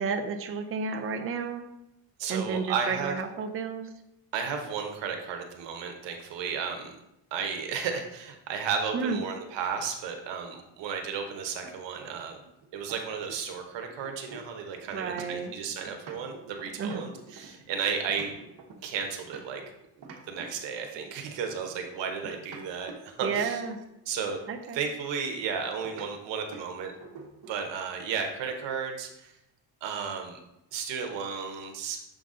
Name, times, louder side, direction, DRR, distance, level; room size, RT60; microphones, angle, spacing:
voice 1, 0.0-1.7 2.3-3.9 8.9-9.2 14.9-15.5 16.8-17.1 23.2-23.8 24.5-24.8, right 5 dB, 30° right, 5 dB, 0.6 m, -31 dB
voice 2, 2.2-3.2 4.3-6.9 7.3-12.4 12.7-18.3 18.8-19.6 20.3-23.6 24.1-24.4 24.7-26.9 27.5-29.3 29.8-30.4 30.7-32.0, right 6 dB, 90° right, 4 dB, 1.1 m, -33 dB
sound 1, 11.6-13.6 13.9-19.7 20.0-21.2 22.1-23.9 25.8-26.1 26.5-26.7 27.0-27.7, right 4 dB, 65° right, 1.2 m, -47 dB
6.8 x 4.0 x 3.8 m, 0.87 s
cardioid pair, 125°, 42 cm